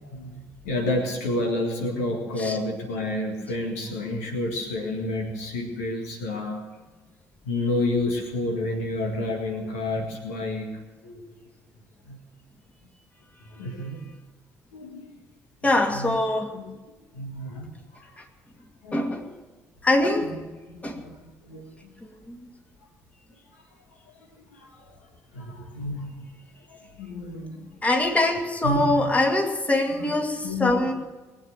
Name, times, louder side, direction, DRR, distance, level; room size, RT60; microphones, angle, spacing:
voice 1, 0.0-6.7 7.4-10.7 11.0-11.2 12.1-12.2 13.4-14.1 14.7-15.1 15.6-16.2 16.5-18.0 18.8-19.3 20.3-20.4 20.7-21.2 21.4-21.9 24.5-25.0 25.3-27.7 28.6-29.1 30.1-30.2 30.4-30.9, left 2 dB, 75° left, 2 dB, 2.0 m, -30 dB
voice 2, 15.6-16.5 18.9-19.2 19.8-20.4 20.8-21.0 22.3-22.4 27.8-30.9, left 2 dB, 15° left, 3 dB, 2.3 m, -23 dB
21.0 x 8.8 x 6.9 m, 1.2 s
figure-of-eight pair, 45°, 8 cm